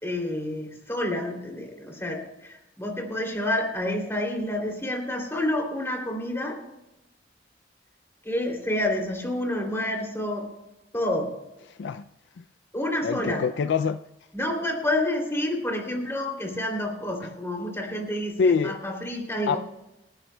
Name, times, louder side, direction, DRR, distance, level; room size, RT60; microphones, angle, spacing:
voice 1, 0.0-6.6 8.2-10.5 10.9-11.3 12.7-13.4 14.3-19.6, left 1 dB, 15° left, 1 dB, 2.9 m, -29 dB
voice 2, 13.0-14.0 18.4-18.8 19.5-19.6, left 5 dB, 65° left, 11 dB, 0.4 m, -24 dB
28.5 x 10.5 x 2.2 m, 0.94 s
head